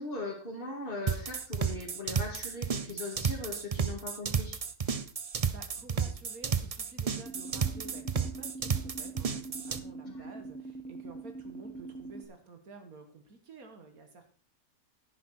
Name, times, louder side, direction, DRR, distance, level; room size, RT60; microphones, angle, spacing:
voice 1, 0.0-4.6 10.0-10.3, left 2 dB, 35° left, -2 dB, 2.7 m, -39 dB
sound 1, 1.1-9.8, right 6 dB, 45° right, 0.4 m, -32 dB
voice 2, 5.5-14.3, right 3 dB, 65° right, 5 dB, 2.1 m, -51 dB
sound 2, 7.3-12.3, right 3 dB, 5° left, 1.1 m, -43 dB
10.5 x 10.5 x 4.5 m, 0.38 s
omnidirectional pair, 1.6 m